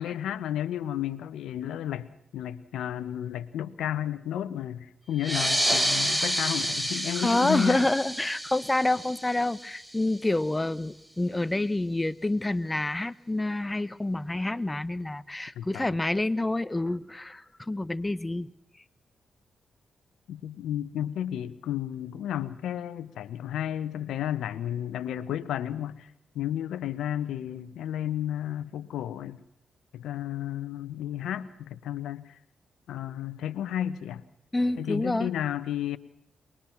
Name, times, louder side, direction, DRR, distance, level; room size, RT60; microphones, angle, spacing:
voice 1, 0.0-7.9 15.6-16.0 20.3-29.4 29.9-32.4 32.9-34.2 34.8-36.0, left 11 dB, 80° left, 1.1 m, -32 dB
sound 1, 5.1-10.3, equal, 10° right, 2.9 m, -29 dB
voice 2, 7.2-18.5 34.5-35.3, left 2 dB, 20° left, 1.2 m, -28 dB
23.5 x 20.5 x 6.0 m
hypercardioid pair, 45°, 0 cm